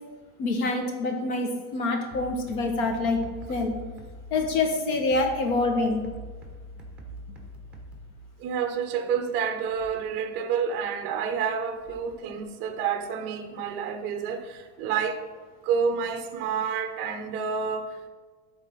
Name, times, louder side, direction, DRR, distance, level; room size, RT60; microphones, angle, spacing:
voice 1, 0.4-3.2 3.5-3.7 4.3-6.0, left 3 dB, 75° left, 3 dB, 1.7 m, -26 dB
sound 1, 2.1-8.1, right 1 dB, ahead, 0.9 m, -43 dB
voice 2, 8.4-15.2 15.6-18.0, right 6 dB, 25° right, 7 dB, 0.5 m, -29 dB
12.0 x 4.0 x 3.8 m, 1.5 s
supercardioid pair, 165°, 43 cm